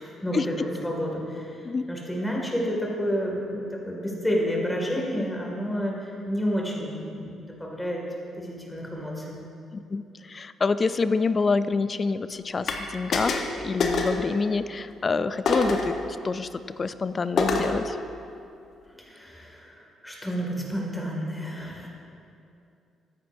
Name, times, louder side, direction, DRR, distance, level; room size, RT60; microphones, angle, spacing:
voice 1, 0.0-1.6 1.9-8.0 8.4-9.3 19.0-21.9, equal, 5° left, -2 dB, 2.2 m, -30 dB
voice 2, 9.9-15.9 16.2-16.5 16.8-18.0, left 4 dB, 35° left, 13 dB, 0.3 m, -27 dB
sound 1, 12.7-12.8 13.1-13.5 13.8-14.2 15.5-15.9 17.4-17.8, left 3 dB, 60° left, 1.0 m, -25 dB
13.5 x 9.0 x 2.7 m, 2.6 s
cardioid pair, 90°, 0 cm